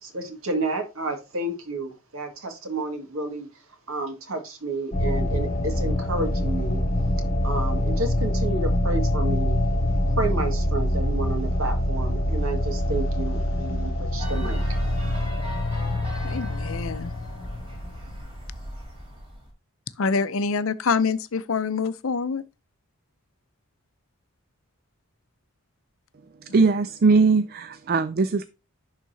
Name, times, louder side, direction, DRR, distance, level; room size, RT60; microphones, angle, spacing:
voice 1, 0.0-3.6 3.9-6.8 7.4-9.6 10.1-15.3, right 2 dB, 70° right, 1.9 m, -31 dB
sound 1, 4.9-18.2, left 1 dB, 35° left, 0.9 m, -25 dB
sound 2, 14.2-19.5, equal, 25° right, 3.4 m, -39 dB
voice 2, 16.2-17.1 20.0-22.4 26.6-26.7, left 5 dB, 65° left, 0.6 m, -26 dB
voice 3, 26.5-28.5, right 4 dB, 45° right, 0.4 m, -20 dB
11.0 x 4.0 x 2.7 m
head